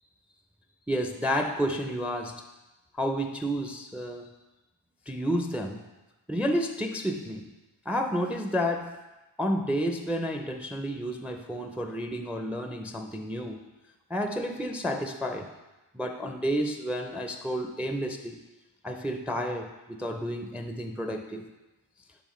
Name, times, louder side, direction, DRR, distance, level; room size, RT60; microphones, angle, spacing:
voice 1, 0.9-2.4 2.9-4.3 5.1-5.8 6.3-7.5 7.9-9.0 9.4-13.6 14.1-15.5 15.9-18.4 18.8-21.4, equal, 5° right, 5 dB, 0.4 m, -30 dB
10.5 x 3.6 x 3.1 m, 1.1 s
cardioid pair, 85°, 49 cm